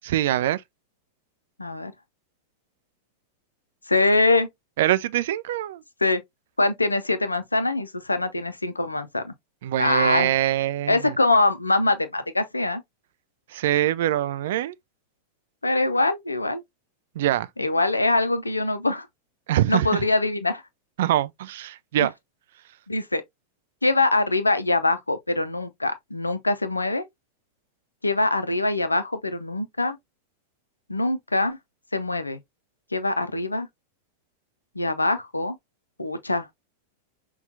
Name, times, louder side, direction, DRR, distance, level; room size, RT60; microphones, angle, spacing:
voice 1, 0.1-0.6 4.8-5.8 9.6-11.2 13.5-14.7 17.2-17.5 19.5-20.0 21.0-22.1, right 13 dB, 55° right, 0.3 m, -24 dB
voice 2, 1.6-1.9 3.9-4.5 6.0-6.2 6.6-9.3 9.8-10.3 10.9-12.8 15.6-16.6 17.6-19.1 19.7-20.6 22.0-22.1 22.9-23.2 23.8-27.1 28.0-30.0 30.9-31.6 31.9-32.4 32.9-33.7 34.8-35.6 36.0-36.5, left 2 dB, 80° left, 0.5 m, -23 dB
5.6 x 2.3 x 2.6 m
figure-of-eight pair, 90°, 0 cm